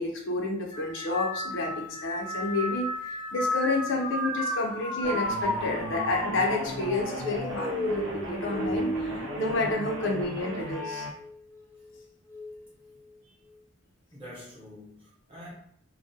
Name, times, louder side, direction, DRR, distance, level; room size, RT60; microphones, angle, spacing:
voice 1, 0.0-11.1, left 2 dB, 65° left, 0 dB, 0.5 m, -30 dB
sound 1, 0.7-10.3 10.8-11.3 12.3-12.7, equal, 15° left, 0.5 m, -33 dB
sound 2, 5.0-11.1, right 1 dB, 80° right, 0.6 m, -37 dB
voice 2, 14.1-15.5, equal, 25° right, -5 dB, 0.8 m, -46 dB
2.3 x 2.1 x 2.7 m, 0.67 s
head